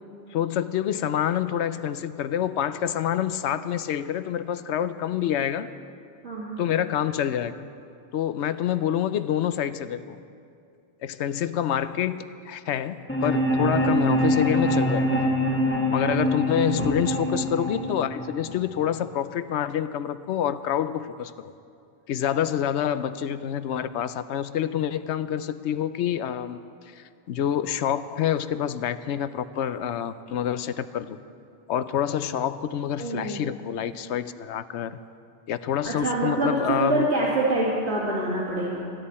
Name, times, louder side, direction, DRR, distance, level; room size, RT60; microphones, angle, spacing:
voice 1, 0.3-5.7 6.6-7.6 8.1-10.2 11.0-15.3 15.9-21.3 22.1-26.6 27.0-31.2 31.7-35.0 35.5-37.1, left 10 dB, 75° left, 13 dB, 0.9 m, -27 dB
voice 2, 6.2-6.6 16.8-16.9 33.0-33.4 35.8-38.8, right 2 dB, 70° right, -8 dB, 2.8 m, -26 dB
sound 1, 13.1-19.1, equal, 10° left, 1.1 m, -24 dB
26.5 x 10.5 x 4.3 m, 2.4 s
omnidirectional pair, 1.2 m